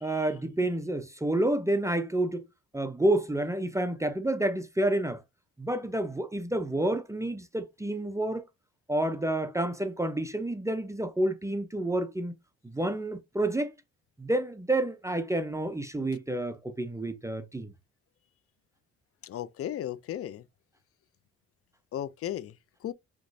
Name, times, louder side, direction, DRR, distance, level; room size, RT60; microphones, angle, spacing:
voice 1, 0.0-2.4 2.7-5.2 5.6-8.4 8.9-12.3 12.6-13.7 14.2-17.7, right 1 dB, 10° right, 0.6 m, -29 dB
voice 2, 19.2-20.4 21.9-22.5 22.8-22.9, left 11 dB, 50° left, 0.4 m, -35 dB
5.1 x 3.0 x 2.7 m
cardioid pair, 90°, 30 cm